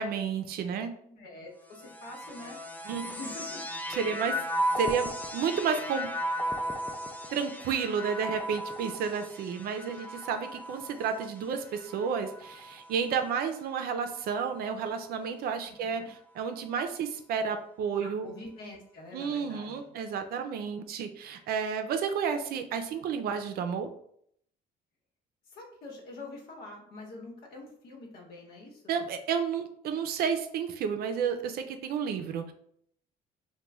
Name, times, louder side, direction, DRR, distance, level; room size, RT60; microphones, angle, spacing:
voice 1, 0.0-0.9 2.9-3.1 3.9-4.3 4.8-6.1 7.3-16.0 16.4-18.3 19.1-23.9 28.9-32.5, right 6 dB, 65° right, 7 dB, 0.5 m, -31 dB
voice 2, 1.1-2.6 2.9-3.7 15.6-16.1 18.0-19.9 25.5-28.8, left 2 dB, 65° left, -1 dB, 1.0 m, -45 dB
sound 1, 1.7-13.1 13.9-14.7, equal, 10° left, 0.3 m, -36 dB
3.0 x 2.2 x 3.4 m, 0.67 s
cardioid pair, 110°, 17 cm